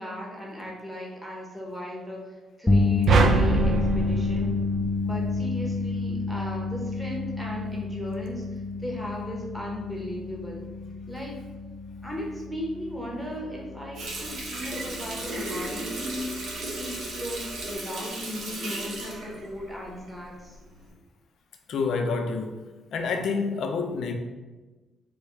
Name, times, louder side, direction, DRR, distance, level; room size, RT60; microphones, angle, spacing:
voice 1, 0.0-4.6 5.0-10.7 11.1-11.4 12.0-20.6, left 1 dB, 5° right, -3 dB, 0.9 m, -37 dB
sound 1, 2.7-14.9 15.3-15.5 17.7-17.8, left 3 dB, 15° left, 0.3 m, -29 dB
sound 2, 3.1-5.5, right 4 dB, 60° right, 0.4 m, -23 dB
Water tap faucet, 13.9-20.3 20.7-20.9, right 2 dB, 75° right, 1.1 m, -35 dB
voice 2, 21.7-22.6 22.9-24.1, left 4 dB, 65° left, 4 dB, 0.6 m, -28 dB
4.2 x 2.3 x 4.6 m, 1.2 s
cardioid pair, 90°, 0 cm